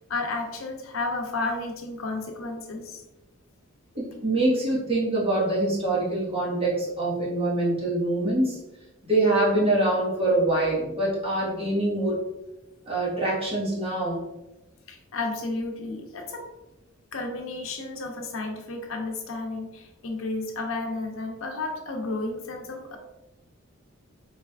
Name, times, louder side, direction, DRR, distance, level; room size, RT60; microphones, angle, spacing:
voice 1, 0.1-3.0 14.9-16.5 17.1-23.0, left 3 dB, 80° left, 3 dB, 0.7 m, -32 dB
voice 2, 3.9-8.6 9.0-12.2 12.9-14.2, right 2 dB, 30° right, -6 dB, 1.3 m, -24 dB
4.1 x 3.3 x 2.3 m, 0.98 s
head